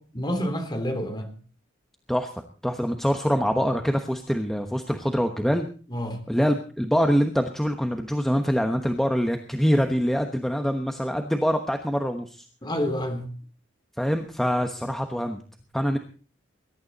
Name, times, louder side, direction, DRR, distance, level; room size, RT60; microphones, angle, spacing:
voice 1, 0.1-1.3 5.9-6.2 12.6-13.3, equal, 25° left, 6 dB, 3.3 m, -28 dB
voice 2, 2.6-5.7 6.3-12.4 14.0-15.4 15.7-16.0, equal, ahead, 5 dB, 1.1 m, -24 dB
21.5 x 12.0 x 4.1 m, 0.39 s
head